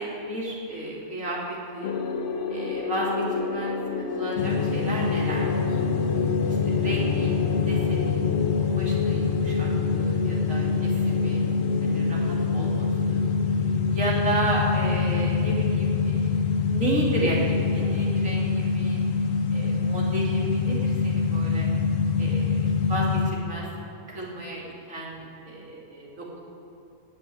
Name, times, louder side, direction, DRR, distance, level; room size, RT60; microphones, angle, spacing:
voice 1, 0.0-1.9 2.5-5.8 6.5-7.3 7.6-8.2 8.7-11.4 11.8-13.2 13.9-16.4 16.7-19.0 19.5-21.7 22.2-23.7 24.1-26.4, right 2 dB, 85° right, -4 dB, 3.2 m, -32 dB
sound 1, 1.8-14.6, left 4 dB, 70° left, 1.2 m, -30 dB
sound 2, 4.4-23.3, left 5 dB, 90° left, 1.4 m, -25 dB
17.5 x 6.6 x 9.2 m, 2.6 s
omnidirectional pair, 1.3 m